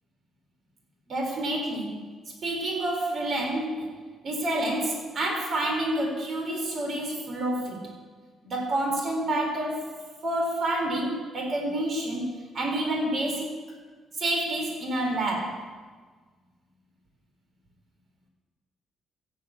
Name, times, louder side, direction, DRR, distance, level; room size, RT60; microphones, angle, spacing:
voice 1, 1.1-2.0 2.4-7.9 8.4-12.3 12.5-13.5 14.2-15.7, right 1 dB, 55° right, 1 dB, 4.0 m, -29 dB
14.5 x 8.8 x 8.5 m, 1.4 s
cardioid pair, 90°, 0 cm